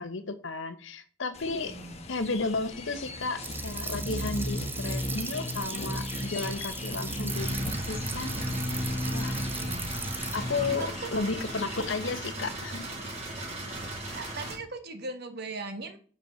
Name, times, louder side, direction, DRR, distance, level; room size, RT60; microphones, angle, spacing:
voice 1, 0.0-1.8 2.1-7.6 7.9-8.5 9.1-9.4 10.3-12.8, left 3 dB, 65° left, 0.9 m, -33 dB
sound 1, 1.3-12.1, left 1 dB, 30° left, 1.2 m, -36 dB
voice 2, 1.7-2.0 9.4-9.8 10.8-11.2 14.1-16.0, right 3 dB, 55° right, 1.3 m, -39 dB
sound 2, 3.4-10.4, right 4 dB, 10° right, 0.6 m, -38 dB
sound 3, 7.3-14.6, right 1 dB, 30° right, 2.3 m, -37 dB
7.1 x 5.3 x 6.7 m
head